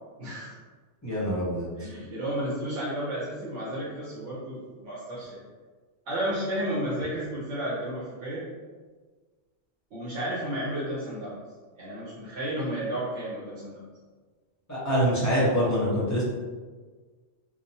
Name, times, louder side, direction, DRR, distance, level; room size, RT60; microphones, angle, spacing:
voice 1, 0.2-0.5 1.7-5.4 6.1-8.4 9.9-11.4 11.8-13.8, right 1 dB, 75° right, -9 dB, 1.0 m, -32 dB
voice 2, 1.0-1.7 14.7-16.2, equal, 25° left, -8 dB, 0.4 m, -25 dB
3.0 x 2.0 x 2.6 m, 1.4 s
omnidirectional pair, 1.2 m